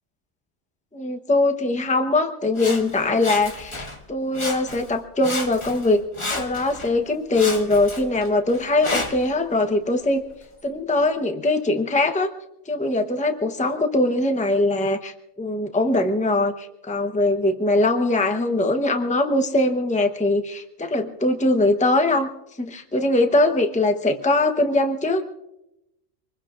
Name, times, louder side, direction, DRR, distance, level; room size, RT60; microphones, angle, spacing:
voice 1, 0.9-6.0 6.3-10.2 10.6-12.3 12.7-22.3 22.6-25.2, left 2 dB, 5° left, 6 dB, 0.9 m, -21 dB
Sawing, 2.6-4.0 4.3-5.0 5.2-6.9 7.3-9.3 10.0-10.1, left 2 dB, 25° left, 1.2 m, -32 dB
26.0 x 21.0 x 2.5 m, 0.86 s
omnidirectional pair, 1.2 m